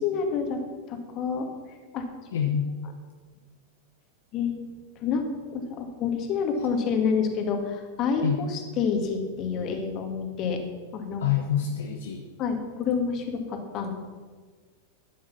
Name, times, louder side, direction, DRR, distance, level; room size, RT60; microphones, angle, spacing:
voice 1, 0.0-0.6 0.9-1.5 1.9-2.1 4.3-4.5 5.0-10.6 10.9-11.3 12.4-13.9, left 6 dB, 35° left, 5 dB, 2.2 m, -28 dB
voice 2, 2.3-2.7 8.2-8.4 11.2-12.2, left 9 dB, 60° left, 3 dB, 1.1 m, -26 dB
12.5 x 10.0 x 6.0 m, 1.5 s
figure-of-eight pair, 90°, 0 cm